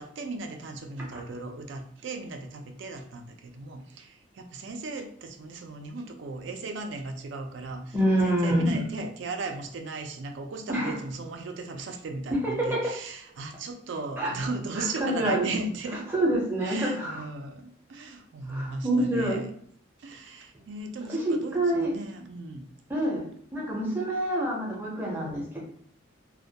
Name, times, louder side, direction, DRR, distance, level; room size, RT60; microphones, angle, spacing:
voice 1, 0.0-8.0 8.2-16.0 16.6-19.5 20.0-22.6, right 3 dB, 60° right, 5 dB, 0.3 m, -37 dB
voice 2, 7.9-8.8 10.7-10.9 12.4-12.8 14.2-14.3 15.0-15.4 16.1-17.2 18.5-19.4 21.1-21.9 22.9-23.3 23.5-25.6, right 1 dB, 10° right, -3 dB, 0.5 m, -26 dB
2.1 x 2.1 x 2.7 m, 0.63 s
head